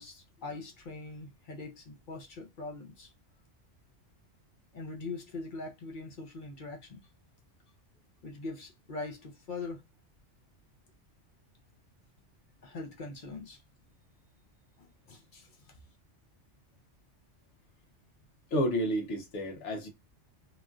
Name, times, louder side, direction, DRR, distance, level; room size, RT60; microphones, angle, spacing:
voice 1, 0.0-3.1 4.7-7.0 8.2-9.8 12.6-13.6 14.8-15.8, left 3 dB, 50° left, 0.7 m, -42 dB
voice 2, 18.5-19.9, equal, 70° left, 1.1 m, -30 dB
3.0 x 2.5 x 2.2 m
omnidirectional pair, 1.2 m